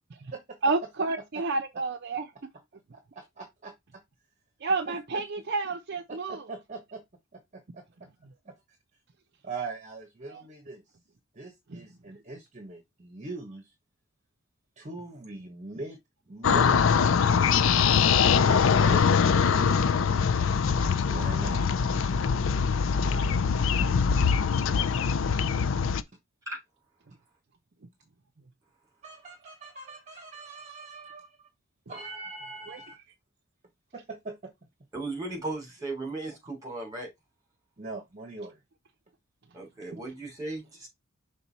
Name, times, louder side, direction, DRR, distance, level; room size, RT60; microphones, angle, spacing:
voice 1, 0.6-2.3 4.6-6.5 8.2-8.3 10.3-10.4 11.7-11.8 22.9-23.4 23.8-23.9 32.7-32.8 39.9-40.0, right 3 dB, 55° right, 0.6 m, -31 dB
voice 2, 2.9-4.0 4.9-5.2 6.1-7.0 7.3-8.1 8.4-8.5 9.4-10.8 11.3-13.7 14.8-16.0 16.3-16.9 18.3-20.4 21.0-21.7 29.0-31.5 31.9-33.0 33.9-34.5 37.8-38.6, right 3 dB, 35° right, 1.1 m, -42 dB
sound 1, 16.4-26.0, left 6 dB, 65° left, 0.4 m, -23 dB
voice 3, 34.9-37.1 39.5-40.9, right 2 dB, 15° right, 3.8 m, -36 dB
5.9 x 4.0 x 4.1 m
head